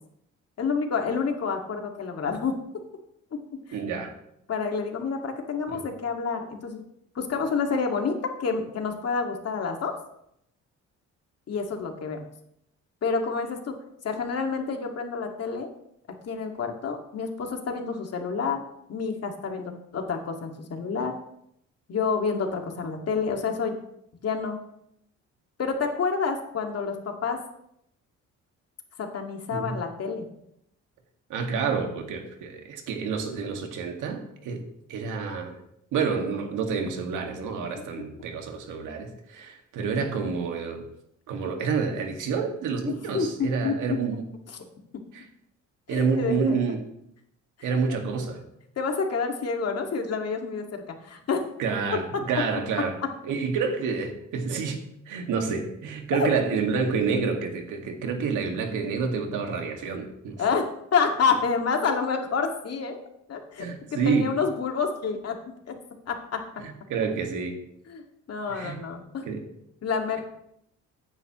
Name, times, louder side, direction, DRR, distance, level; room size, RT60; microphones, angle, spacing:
voice 1, 0.6-2.6 3.3-3.4 3.7-3.8 4.5-6.8 7.2-9.9 11.5-12.2 13.0-13.8 14.0-15.7 16.3-18.6 18.9-21.1 21.9-23.8 24.2-24.6 25.6-27.4 29.0-30.3 37.8-37.9 42.8-44.0 45.9-46.6 47.6-47.7 48.8-51.4 52.8-52.9 56.1-56.3 60.4-63.0 63.3-63.7 63.9-65.7 66.1-66.4 67.9-69.4 69.8-70.2, left 5 dB, 55° left, 3 dB, 2.2 m, -28 dB
voice 2, 3.7-4.1 5.7-5.8 29.5-29.8 31.3-34.6 34.9-35.6 35.9-40.8 41.3-44.3 45.1-45.2 45.9-46.8 47.6-48.4 51.6-53.0 53.2-60.4 63.6-64.3 66.6-67.6 68.5-68.8 69.2-69.4, right 5 dB, 85° right, 3 dB, 2.0 m, -28 dB
14.5 x 9.6 x 3.1 m, 0.76 s
cardioid pair, 90°, 30 cm